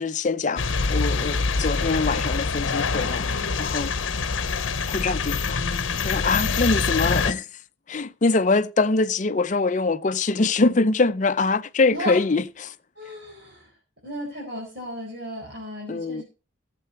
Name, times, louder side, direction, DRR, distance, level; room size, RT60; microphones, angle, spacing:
voice 1, 0.0-3.9 4.9-5.6 6.0-7.5 7.9-12.8 15.9-16.2, left 3 dB, 40° left, 0.5 m, -24 dB
sound 1, 0.6-7.3, left 4 dB, 75° left, 0.8 m, -25 dB
voice 2, 13.0-13.7 14.0-16.2, equal, 55° right, 4.4 m, -34 dB
16.5 x 7.7 x 4.2 m
head